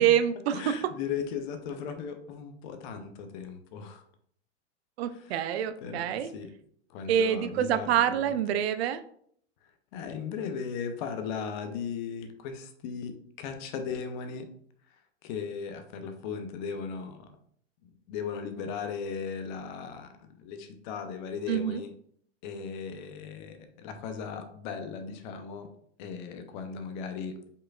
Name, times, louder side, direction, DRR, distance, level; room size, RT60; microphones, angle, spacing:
voice 1, 0.0-0.6 5.0-6.3 7.1-9.0 21.5-21.8, right 10 dB, 65° right, 11 dB, 0.5 m, -26 dB
voice 2, 0.5-4.0 5.1-5.4 5.8-6.5 6.9-8.4 9.9-14.5 15.2-17.3 18.1-21.9 22.4-25.7 26.0-27.4, left 6 dB, 40° left, 7 dB, 0.7 m, -37 dB
5.2 x 4.2 x 2.4 m, 0.63 s
supercardioid pair, 150°, 35 cm